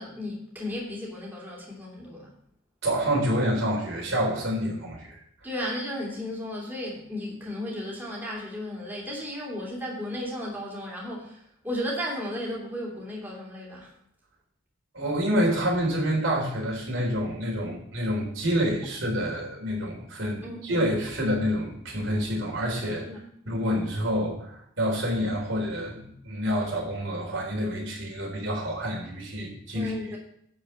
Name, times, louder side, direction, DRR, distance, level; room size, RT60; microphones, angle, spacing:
voice 1, 0.0-2.3 5.4-13.9 20.4-20.9 23.0-23.2 29.7-30.2, left 1 dB, 10° right, -4 dB, 2.9 m, -34 dB
voice 2, 2.8-5.2 14.9-23.0 23.5-29.9, equal, 70° right, -1 dB, 3.8 m, -28 dB
11.5 x 5.0 x 7.4 m, 0.71 s
head